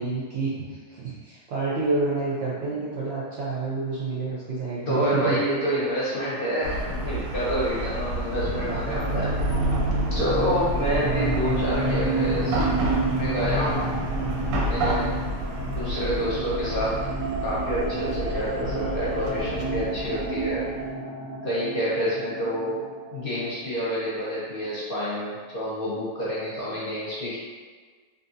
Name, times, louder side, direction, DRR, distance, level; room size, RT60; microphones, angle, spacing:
voice 1, 0.0-5.3 8.7-8.8 11.0-11.5, right 3 dB, 65° right, -7 dB, 0.6 m, -29 dB
voice 2, 4.9-9.5 10.1-12.6 13.1-13.9 14.6-15.1 15.8-17.0 17.4-20.6 21.4-22.8 23.1-27.4, equal, 50° left, -8 dB, 0.8 m, -28 dB
Chatter / Car passing by / Traffic noise roadway noise, 6.6-20.9, right 1 dB, 90° right, 1.0 m, -29 dB
sound 1, 8.5-24.1, right 2 dB, 20° left, 0.3 m, -31 dB
2.6 x 2.6 x 2.6 m, 1.5 s
omnidirectional pair, 1.5 m